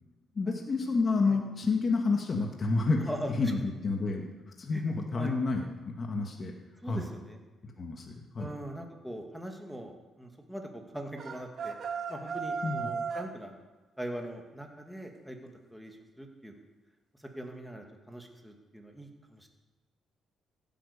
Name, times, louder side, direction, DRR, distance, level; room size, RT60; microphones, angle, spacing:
voice 1, 0.4-3.1 3.4-4.3 4.6-6.5 6.9-7.1 7.6-8.5 12.6-12.9, left 3 dB, 40° left, 2 dB, 1.8 m, -29 dB
voice 2, 6.8-7.4 8.4-11.7 12.1-13.5 14.0-16.6 17.2-19.5, right 1 dB, ahead, 2 dB, 2.3 m, -41 dB
sound 1, 11.2-13.3, right 5 dB, 60° right, 1.8 m, -35 dB
15.5 x 9.2 x 6.9 m, 1.2 s
cardioid pair, 90°, 0 cm